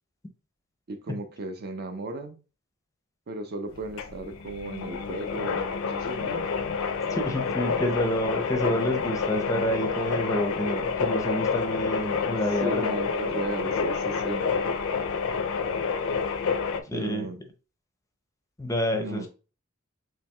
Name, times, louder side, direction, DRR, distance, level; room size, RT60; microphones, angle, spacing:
voice 1, 0.9-2.4 3.3-6.5 12.6-14.5 16.9-17.4 18.9-19.3, right 2 dB, 50° right, 0.5 m, -35 dB
sound 1, 3.7-16.8, left 5 dB, 70° left, 0.4 m, -28 dB
voice 2, 7.1-12.9 16.9-17.3 18.6-19.3, equal, 15° left, 0.5 m, -28 dB
4.4 x 3.1 x 2.2 m
head